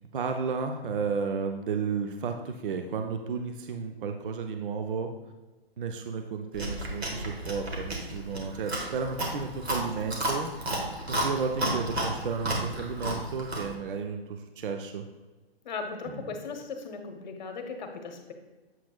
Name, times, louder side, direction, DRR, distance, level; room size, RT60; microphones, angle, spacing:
voice 1, 0.1-5.1 5.8-10.5 11.1-15.0 16.1-16.3, right 5 dB, 55° right, 5 dB, 0.6 m, -33 dB
Chewing mastication, 6.5-13.7, right 1 dB, 90° right, 1.6 m, -32 dB
voice 2, 15.6-18.3, left 4 dB, 45° left, 5 dB, 0.9 m, -37 dB
7.4 x 5.9 x 2.3 m, 1.2 s
hypercardioid pair, 140°, 31 cm